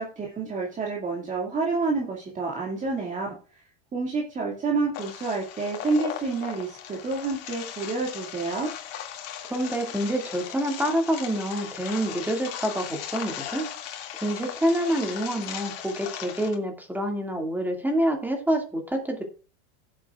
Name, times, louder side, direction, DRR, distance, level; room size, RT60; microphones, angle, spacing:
voice 1, 0.0-3.6 3.9-8.7, right 3 dB, 25° right, -2 dB, 2.2 m, -29 dB
sound 1, 4.9-16.5, left 10 dB, 50° left, 2.3 m, -38 dB
voice 2, 9.5-13.7 14.2-19.2, right 1 dB, 5° right, 2 dB, 2.2 m, -27 dB
16.5 x 7.6 x 2.4 m, 0.39 s
supercardioid pair, 130°, 32 cm